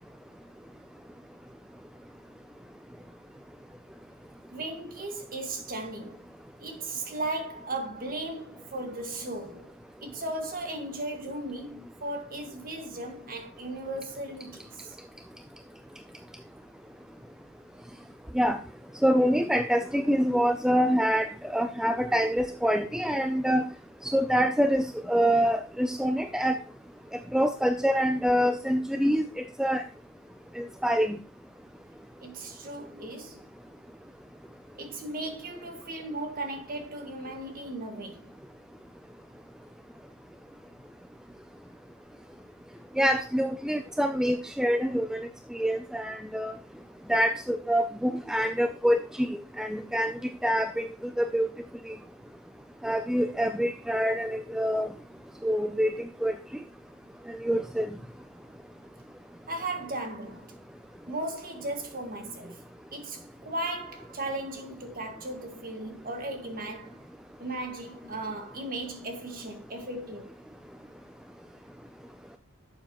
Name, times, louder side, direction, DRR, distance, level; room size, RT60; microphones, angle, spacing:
voice 1, 4.5-6.2 6.6-9.7 10.0-15.0 32.2-33.5 34.8-38.3 59.5-60.6 61.1-62.6 62.9-67.1 67.4-70.3, right 2 dB, 45° right, 1.8 m, -36 dB
voice 2, 19.0-23.6 24.0-26.6 27.3-29.2 29.6-29.8 30.6-31.2 43.0-46.6 47.1-50.1 50.4-50.9 51.2-51.5 51.9-52.0 52.8-54.9 55.4-56.3 57.3-57.9, equal, 5° right, 0.4 m, -26 dB
11.0 x 7.0 x 3.0 m
head